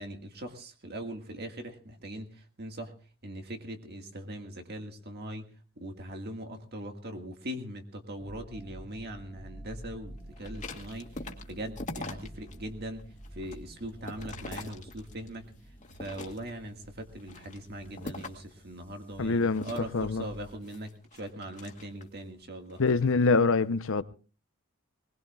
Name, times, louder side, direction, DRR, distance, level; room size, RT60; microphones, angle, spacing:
voice 1, 0.0-2.9 3.2-5.5 5.8-13.0 13.3-15.5 16.0-22.8, right 1 dB, 50° right, 1.8 m, -41 dB
sound 1, 8.2-20.5, equal, 10° left, 2.0 m, -49 dB
sound 2, 10.4-12.6 13.0-15.4 15.8-16.7 17.2-18.5 19.5-22.2 22.7-23.0, left 2 dB, 35° left, 2.1 m, -43 dB
voice 2, 19.2-19.7 19.9-20.2 22.8-24.0, left 4 dB, 65° left, 0.8 m, -24 dB
21.0 x 21.0 x 2.4 m
head